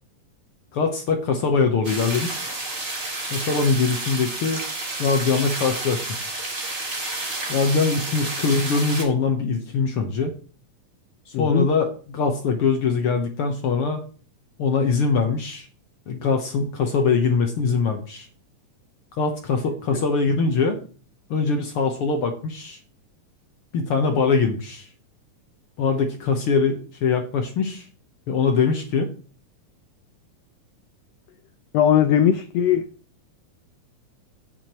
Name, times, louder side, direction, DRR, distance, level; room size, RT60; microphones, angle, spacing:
voice 1, 0.7-2.6 3.3-4.6 5.0-6.4 7.5-10.3 11.3-14.0 14.6-15.7 16.1-18.3 19.1-20.8 21.3-22.8 23.7-24.9 25.8-27.9 28.3-29.1, left 4 dB, 65° left, 1.4 m, -22 dB
sound 1, 1.8-9.0, right 2 dB, 30° right, 2.1 m, -30 dB
voice 2, 11.3-11.7 19.9-20.0 31.7-32.9, left 9 dB, 90° left, 1.4 m, -19 dB
17.0 x 6.5 x 3.0 m
omnidirectional pair, 3.7 m